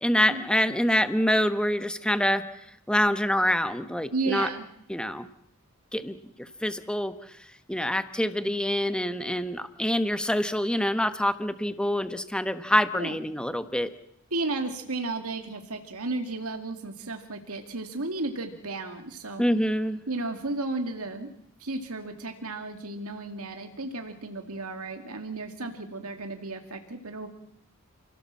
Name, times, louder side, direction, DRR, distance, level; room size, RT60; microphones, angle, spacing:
voice 1, 0.0-2.4 2.9-4.5 4.9-5.3 5.9-6.2 6.6-7.1 7.7-13.9 19.4-20.0, equal, 5° left, 10 dB, 1.2 m, -26 dB
voice 2, 4.1-4.6 12.9-13.2 14.3-19.4 20.1-21.3 21.6-27.3, right 3 dB, 75° right, 5 dB, 2.2 m, -33 dB
29.5 x 17.5 x 7.5 m, 0.77 s
head